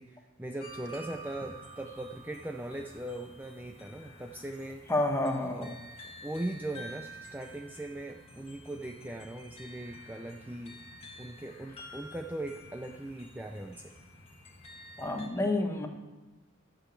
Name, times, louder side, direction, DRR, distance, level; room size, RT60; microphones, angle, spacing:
voice 1, 0.0-4.9 5.4-5.7 6.2-10.8 11.2-13.9, right 1 dB, 10° right, 3 dB, 0.4 m, -40 dB
sound 1, 0.6-15.3, equal, 30° left, 1.6 m, -50 dB
voice 2, 4.9-5.7 15.0-15.9, left 2 dB, 15° left, 3 dB, 1.2 m, -29 dB
11.5 x 6.2 x 8.3 m, 1.2 s
head